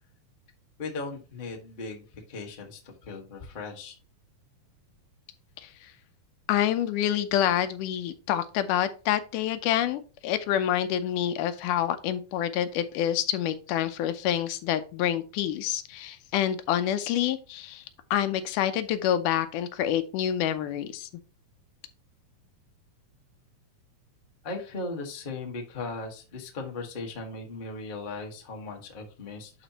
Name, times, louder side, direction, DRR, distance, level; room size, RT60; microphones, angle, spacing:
voice 1, 0.8-4.0 24.4-29.5, left 3 dB, 60° left, 1 dB, 0.5 m, -37 dB
voice 2, 6.5-17.8 18.1-21.1, left 11 dB, 85° left, 11 dB, 2.2 m, -27 dB
11.0 x 4.2 x 2.9 m, 0.34 s
omnidirectional pair, 3.6 m